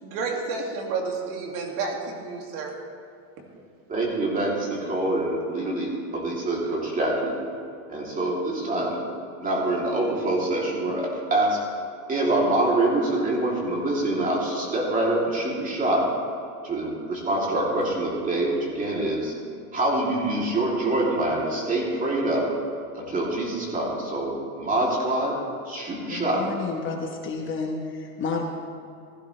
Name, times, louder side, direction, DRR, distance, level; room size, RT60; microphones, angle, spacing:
voice 1, 0.0-2.8 3.4-3.5, right 4 dB, 50° right, 1 dB, 2.3 m, -30 dB
voice 2, 3.9-7.4 7.9-9.0 9.4-11.6 12.1-16.1 16.6-19.3 19.7-22.5 22.9-25.4 25.6-26.5, right 1 dB, 20° right, -3 dB, 3.0 m, -25 dB
voice 3, 26.1-28.4, left 4 dB, 30° left, 1 dB, 1.2 m, -31 dB
16.0 x 15.0 x 3.3 m, 2.6 s
supercardioid pair, 145°, 42 cm